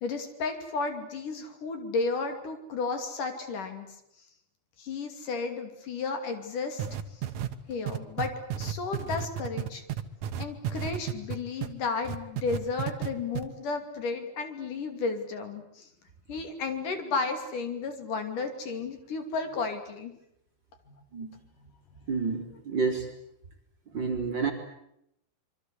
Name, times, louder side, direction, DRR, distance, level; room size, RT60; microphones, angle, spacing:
voice 1, 0.0-3.9 4.8-6.9 7.7-9.8 10.4-15.9 16.3-20.1 20.9-21.0, left 4 dB, 60° left, 7 dB, 4.1 m, -33 dB
sound 1, 6.8-11.7 12.0-13.1 13.3-13.4, right 10 dB, 60° right, 2.3 m, -32 dB
voice 2, 22.1-23.1 23.9-24.5, right 5 dB, 30° right, 3 dB, 3.9 m, -29 dB
26.5 x 24.0 x 8.3 m, 0.78 s
omnidirectional pair, 4.2 m